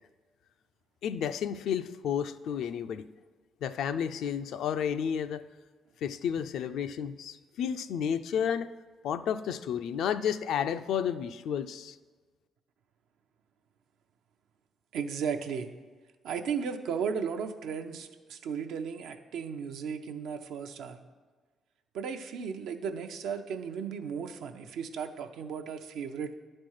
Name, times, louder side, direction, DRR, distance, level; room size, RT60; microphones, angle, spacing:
voice 1, 1.0-3.1 3.6-5.5 6.0-8.7 9.0-12.0, left 8 dB, 75° left, 11 dB, 0.4 m, -31 dB
voice 2, 14.9-15.7 16.2-21.0 21.9-26.3, right 6 dB, 80° right, 6 dB, 0.6 m, -35 dB
10.5 x 4.3 x 6.4 m, 1.4 s
cardioid pair, 90°, 0 cm